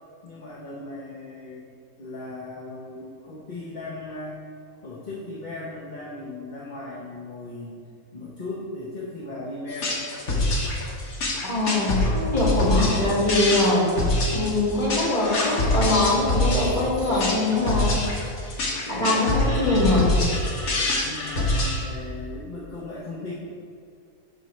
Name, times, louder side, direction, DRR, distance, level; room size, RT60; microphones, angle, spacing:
voice 1, 0.2-1.6 2.0-4.4 4.8-7.8 8.1-9.9 21.0-23.3, left 2 dB, 40° left, -5 dB, 0.8 m, -37 dB
sound 1, 9.7-21.7, left 2 dB, 75° left, 1.7 m, -24 dB
voice 2, 11.4-13.9 14.3-17.9 18.9-20.1, left 2 dB, 25° left, -7 dB, 1.9 m, -22 dB
12.0 x 4.5 x 3.1 m, 2.4 s
omnidirectional pair, 1.5 m